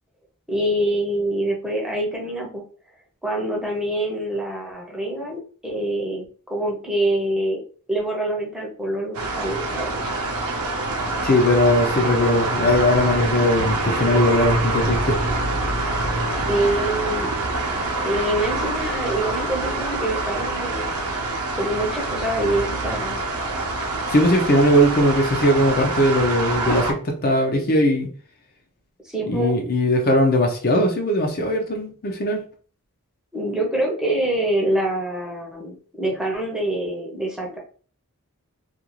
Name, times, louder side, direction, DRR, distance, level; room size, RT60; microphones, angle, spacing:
voice 1, 0.5-2.6 3.2-7.6 7.9-10.1 16.5-17.3 18.0-20.9 21.6-23.2 29.0-29.6 33.3-37.6, right 1 dB, 5° right, -2 dB, 0.6 m, -25 dB
sound 1, 9.1-26.9, right 2 dB, 80° right, 0.6 m, -25 dB
voice 2, 11.2-15.2 24.0-28.1 29.3-32.4, left 1 dB, 40° left, 1 dB, 0.5 m, -19 dB
2.5 x 2.3 x 2.9 m, 0.42 s
head